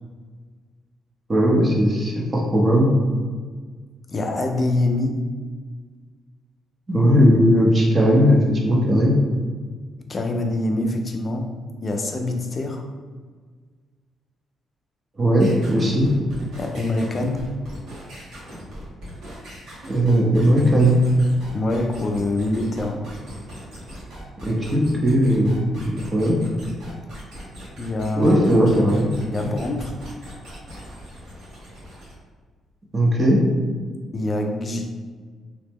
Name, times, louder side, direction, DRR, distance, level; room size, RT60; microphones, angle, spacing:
voice 1, 1.3-2.9 6.9-8.4 8.6-9.1 15.2-16.1 19.9-21.0 24.4-26.4 28.2-29.1 32.9-33.4, equal, 30° right, -3 dB, 0.7 m, -18 dB
voice 2, 4.1-5.3 10.1-12.8 16.6-17.5 21.5-23.1 27.8-28.4 29.3-29.9 34.1-34.9, left 2 dB, 35° left, 3 dB, 0.4 m, -25 dB
sound 1, 15.4-32.1, equal, 75° right, 1.1 m, -40 dB
2.9 x 2.1 x 3.4 m, 1.5 s
cardioid pair, 90°, 0 cm